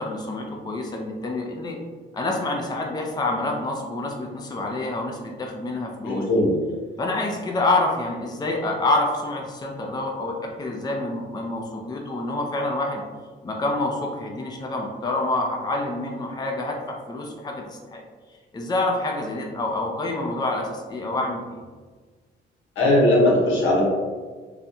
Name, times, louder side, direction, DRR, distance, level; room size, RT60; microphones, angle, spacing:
voice 1, 0.0-1.8 2.1-6.2 7.0-13.0 13.4-18.0 18.5-21.4, left 2 dB, 20° left, 0 dB, 0.5 m, -27 dB
voice 2, 6.0-6.6 22.8-23.8, left 1 dB, 80° left, -3 dB, 1.0 m, -19 dB
4.1 x 2.2 x 2.7 m, 1.4 s
cardioid pair, 90°, 20 cm